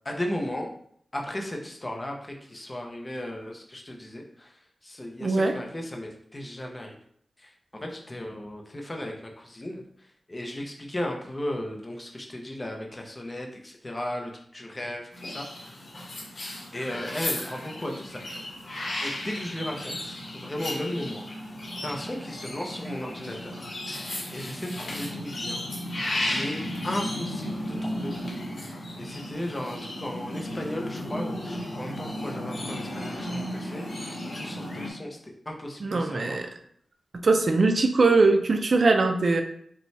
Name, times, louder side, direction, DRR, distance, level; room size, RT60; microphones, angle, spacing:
voice 1, 0.0-0.7 1.1-4.5 4.8-7.0 7.4-9.8 10.3-15.5 16.7-18.4 19.0-21.2 21.8-23.7 24.3-25.6 26.2-26.6 26.8-28.1 29.0-35.2 35.5-36.5, left 1 dB, 20° left, 1 dB, 0.6 m, -35 dB
voice 2, 5.2-5.6 35.8-36.5 37.2-39.4, right 3 dB, 45° right, 6 dB, 0.4 m, -21 dB
sound 1, 15.1-34.9, left 1 dB, 55° left, 1.2 m, -34 dB
5.2 x 2.3 x 3.2 m, 0.65 s
wide cardioid pair, 150°, 0 cm